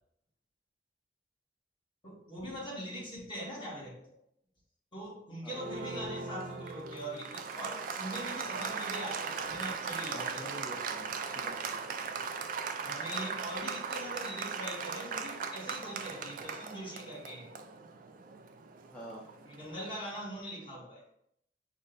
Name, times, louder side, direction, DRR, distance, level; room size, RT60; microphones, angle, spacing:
voice 1, 2.0-4.2 4.9-10.5 12.8-17.5 19.4-21.0, equal, 30° left, -4 dB, 1.4 m, -42 dB
voice 2, 5.4-5.7 10.1-11.9 18.9-19.2, equal, 5° left, -6 dB, 0.6 m, -47 dB
Applause, 5.5-19.8, right 5 dB, 50° right, 0.3 m, -39 dB
5.1 x 2.2 x 3.8 m, 0.74 s
head